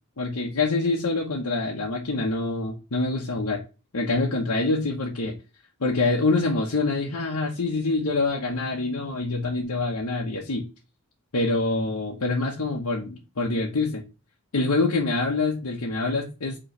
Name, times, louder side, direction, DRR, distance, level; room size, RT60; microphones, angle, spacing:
voice 1, 0.2-3.6 3.9-5.4 5.8-10.7 11.3-14.0 14.5-16.6, left 3 dB, 70° left, -2 dB, 1.0 m, -25 dB
5.2 x 3.1 x 3.1 m, 0.30 s
head